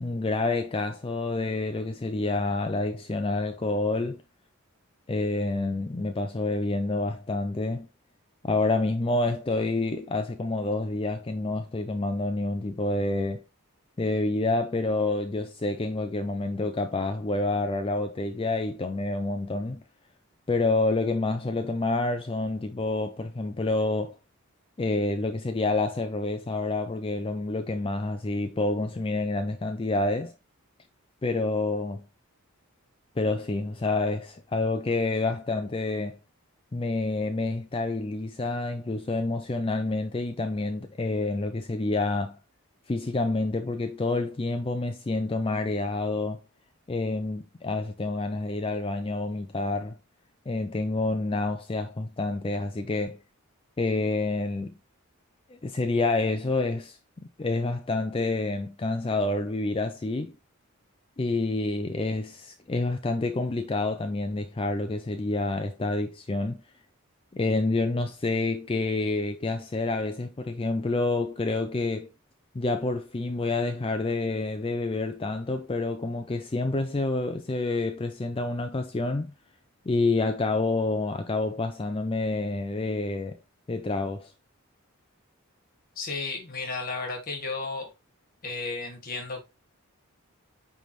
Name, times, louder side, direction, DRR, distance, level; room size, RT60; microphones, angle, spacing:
voice 1, 0.0-4.2 5.1-7.9 8.4-13.4 14.0-19.8 20.5-24.1 24.8-30.3 31.2-32.0 33.2-36.2 36.7-42.4 42.9-46.4 46.9-49.9 50.5-53.2 53.8-54.7 55.6-57.0 57.4-60.4 61.2-66.6 67.3-72.1 72.5-79.3 79.9-83.4 83.7-84.3, left 2 dB, 25° left, 0.4 m, -28 dB
voice 2, 86.0-87.9 88.4-89.4, left 3 dB, 40° left, 1.5 m, -33 dB
9.0 x 3.4 x 3.1 m
head